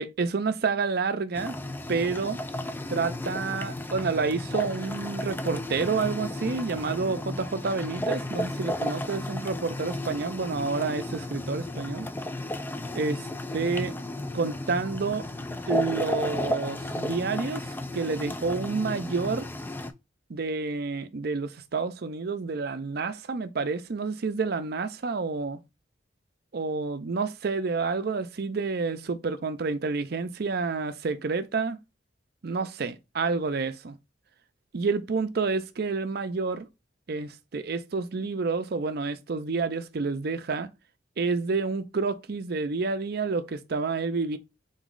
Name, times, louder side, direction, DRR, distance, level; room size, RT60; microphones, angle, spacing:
voice 1, 0.0-1.5 1.9-2.4 2.9-12.1 12.9-13.2 13.5-13.9 14.3-15.3 15.7-19.5 20.3-25.6 26.5-31.8 32.4-34.0 34.7-36.7 37.1-40.7 41.2-44.4, right 4 dB, 55° right, 0.5 m, -29 dB
sound 1, 1.3-19.9, left 1 dB, 10° left, 0.3 m, -33 dB
3.9 x 3.1 x 3.7 m
head